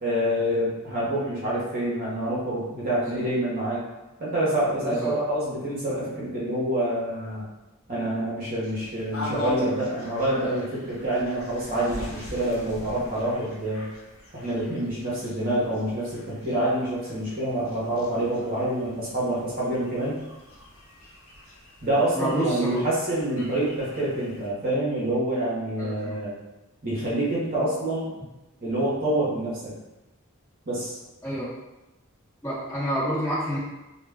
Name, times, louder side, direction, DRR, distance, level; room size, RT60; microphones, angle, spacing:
voice 1, 0.0-3.8 4.2-7.4 7.9-13.9 14.3-20.2 21.8-26.3 26.8-28.1 28.6-29.7 30.7-31.0, right 1 dB, 40° right, -7 dB, 0.8 m, -27 dB
voice 2, 4.8-5.1 22.1-22.8 23.4-23.5 25.8-26.2 31.2-31.4 32.4-33.6, equal, 15° left, -12 dB, 1.1 m, -29 dB
sound 1, 8.6-24.5, left 1 dB, 70° left, 0.6 m, -42 dB
2.2 x 2.2 x 3.4 m, 1.0 s
head